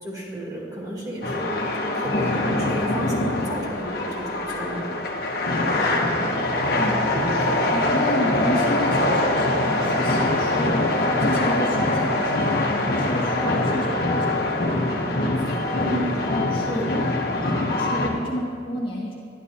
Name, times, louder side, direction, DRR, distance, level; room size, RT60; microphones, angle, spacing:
voice 1, 0.0-4.9 15.4-16.2 16.7-16.9, right 1 dB, 20° right, -3 dB, 2.1 m, -32 dB
sound 1, 1.2-18.1, left 2 dB, 55° left, 1.2 m, -23 dB
voice 2, 6.7-7.1 7.4-14.7 16.1-16.9 17.2-19.1, left 1 dB, 30° left, -5 dB, 1.5 m, -31 dB
11.5 x 11.0 x 4.3 m, 2.3 s
head